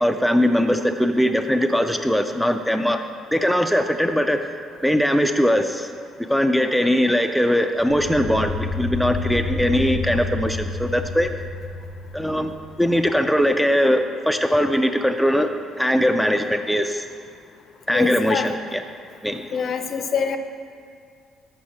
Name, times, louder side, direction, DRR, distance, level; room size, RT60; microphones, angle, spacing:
voice 1, 0.0-3.0 3.3-4.5 4.8-5.9 6.3-11.3 12.1-12.5 12.8-15.5 15.8-17.0 17.9-18.8 19.2-19.5, equal, ahead, 6 dB, 0.3 m, -20 dB
sound 1, 7.8-13.1, left 3 dB, 85° left, 0.7 m, -30 dB
voice 2, 17.9-18.5 19.5-20.4, left 6 dB, 50° left, 8 dB, 0.5 m, -25 dB
6.2 x 5.8 x 6.3 m, 2.3 s
cardioid pair, 135°, 0 cm